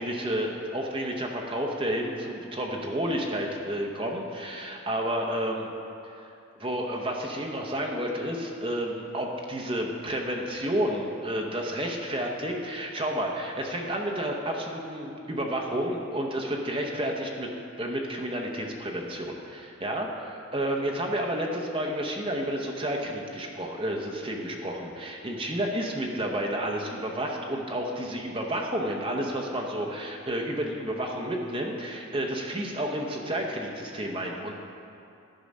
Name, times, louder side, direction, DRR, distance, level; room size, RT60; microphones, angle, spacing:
voice 1, 0.0-5.7 6.0-6.1 6.6-17.5 17.8-20.1 20.5-34.7, right 1 dB, 25° right, 0 dB, 0.8 m, -31 dB
11.5 x 4.7 x 5.3 m, 2.7 s
head